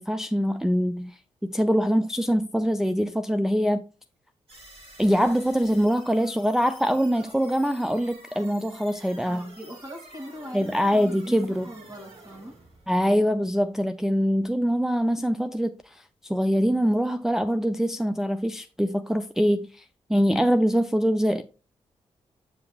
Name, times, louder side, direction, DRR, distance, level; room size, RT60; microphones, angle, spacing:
voice 1, 0.0-3.8 5.0-9.5 10.5-11.7 12.9-19.8 20.1-21.4, equal, 5° right, 0.4 m, -24 dB
sound 1, 4.5-13.7, right 2 dB, 55° right, 2.9 m, -50 dB
voice 2, 9.3-12.6, equal, 30° right, 2.4 m, -41 dB
8.0 x 5.3 x 2.4 m
cardioid pair, 70°, 12 cm